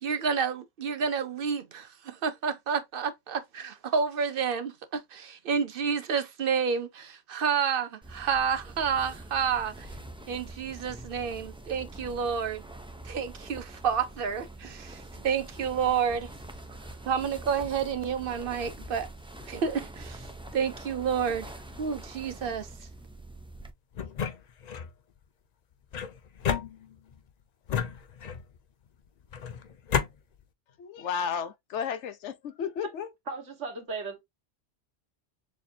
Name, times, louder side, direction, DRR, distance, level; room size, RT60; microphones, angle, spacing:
voice 1, 0.0-9.9 10.3-12.6 13.0-16.3 17.0-19.1 19.4-20.3 20.5-21.5 21.8-22.7, right 6 dB, 55° right, 0.9 m, -30 dB
sound 1, 8.0-23.7, right 1 dB, 5° right, 0.4 m, -45 dB
sound 2, 23.9-24.9 25.9-27.2 27.7-28.6 29.3-30.1, left 7 dB, 50° left, 0.5 m, -32 dB
voice 2, 30.8-33.1, left 7 dB, 80° left, 1.0 m, -33 dB
voice 3, 33.3-34.2, right 4 dB, 90° right, 1.9 m, -36 dB
6.7 x 2.4 x 2.7 m
omnidirectional pair, 1.2 m